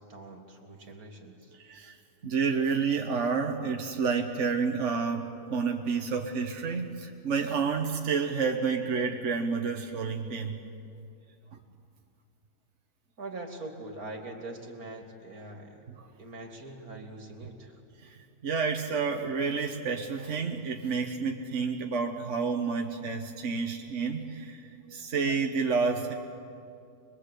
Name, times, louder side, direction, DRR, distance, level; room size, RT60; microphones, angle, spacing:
voice 1, 0.1-1.5 13.2-15.9 16.2-17.8, right 2 dB, 75° right, 3 dB, 3.0 m, -43 dB
voice 2, 1.6-2.0 2.2-10.6 18.0-26.1, right 5 dB, 55° right, 2 dB, 1.5 m, -30 dB
26.0 x 22.0 x 8.3 m, 2.5 s
omnidirectional pair, 1.6 m